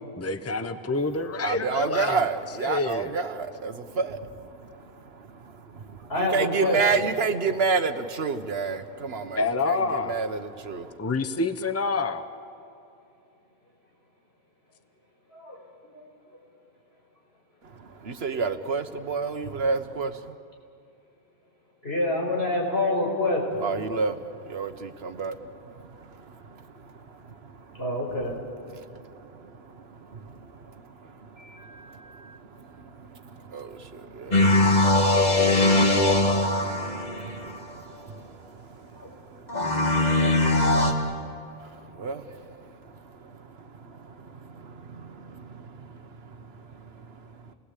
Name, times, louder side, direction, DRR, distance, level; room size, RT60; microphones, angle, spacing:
voice 1, 0.2-2.2 2.6-3.1 9.4-10.1 11.0-12.2, left 3 dB, 15° left, 9 dB, 0.9 m, -27 dB
voice 2, 1.4-10.9 17.8-20.3 23.6-27.8 28.7-47.5, right 5 dB, 75° right, 9 dB, 1.4 m, -32 dB
voice 3, 6.1-7.0 15.3-15.6 15.9-16.1 21.8-23.7 27.8-28.4 31.4-32.4 38.9-39.1 42.3-42.4, left 2 dB, 75° left, -2 dB, 5.4 m, -28 dB
sound 1, 34.3-37.5 39.5-40.9, left 2 dB, 40° left, 2.1 m, -21 dB
29.0 x 19.5 x 8.3 m, 2.6 s
omnidirectional pair, 1.0 m